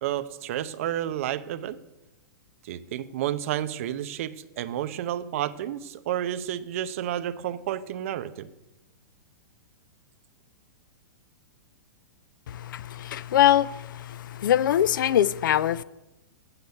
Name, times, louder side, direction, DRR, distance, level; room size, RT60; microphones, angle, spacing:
voice 1, 0.0-1.8 2.6-8.5, right 11 dB, 40° right, 0.6 m, -31 dB
voice 2, 12.5-15.8, left 11 dB, 70° left, 0.4 m, -23 dB
8.0 x 7.8 x 7.0 m
hypercardioid pair, 170°, 11 cm